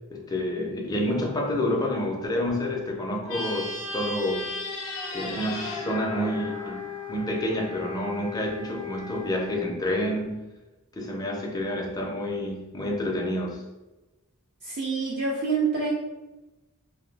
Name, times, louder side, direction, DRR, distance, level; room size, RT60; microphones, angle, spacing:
voice 1, 0.1-4.5 5.1-6.8 7.1-10.5 11.0-13.6, left 1 dB, 15° left, -1 dB, 0.4 m, -29 dB
sound 1, 3.2-7.7, left 2 dB, 65° left, 0.5 m, -35 dB
sound 2, 5.4-9.6, left 7 dB, 80° right, 0.8 m, -38 dB
voice 2, 14.6-15.9, right 4 dB, 50° right, -5 dB, 0.5 m, -26 dB
2.6 x 2.0 x 3.2 m, 1.1 s
head